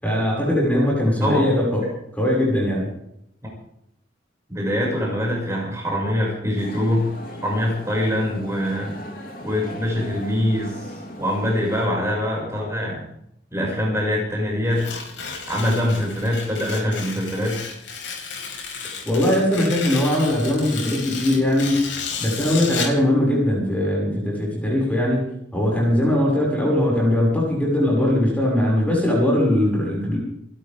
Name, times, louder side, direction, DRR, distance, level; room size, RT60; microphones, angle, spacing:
voice 1, 0.0-2.9 19.0-21.8 22.2-30.2, left 1 dB, 10° left, -3 dB, 6.2 m, -20 dB
voice 2, 4.5-7.1 7.4-9.0 9.4-10.9 11.2-13.0 13.5-14.8 15.5-17.6, left 1 dB, 15° right, -2 dB, 6.4 m, -23 dB
sound 1, 6.6-11.9, equal, 45° left, 3.7 m, -38 dB
Tearing, 14.7-23.0, left 5 dB, 80° left, 5.3 m, -33 dB
29.0 x 12.5 x 3.7 m, 0.74 s
head